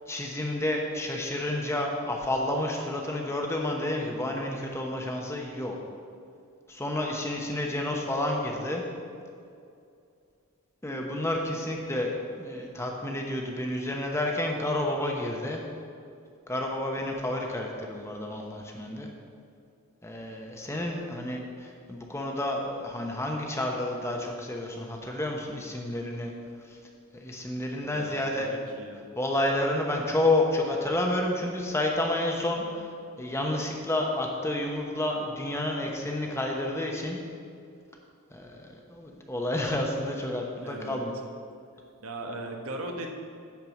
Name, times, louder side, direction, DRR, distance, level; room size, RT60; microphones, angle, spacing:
voice 1, 0.1-5.8 6.7-8.8 10.8-12.1 12.4-15.6 16.5-19.1 20.0-26.3 26.7-26.8 27.1-28.6 29.1-32.9 33.2-37.2 38.3-41.1, left 1 dB, 10° left, 1 dB, 0.9 m, -30 dB
voice 2, 27.9-29.1 40.6-41.0 42.0-43.1, right 1 dB, 75° right, 2 dB, 1.1 m, -38 dB
10.5 x 4.8 x 7.1 m, 2.4 s
head